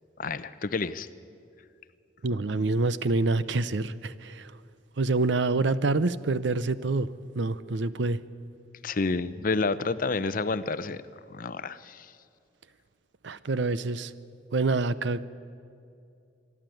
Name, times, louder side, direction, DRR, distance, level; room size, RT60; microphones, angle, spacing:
voice 1, 0.2-1.1 8.8-11.0 11.3-12.1, left 3 dB, 45° left, 14 dB, 0.6 m, -29 dB
voice 2, 2.2-4.5 5.0-7.1 7.4-8.2 13.2-14.1 14.5-15.2, right 3 dB, 65° right, 16 dB, 0.6 m, -26 dB
26.0 x 11.0 x 9.1 m, 2.4 s
head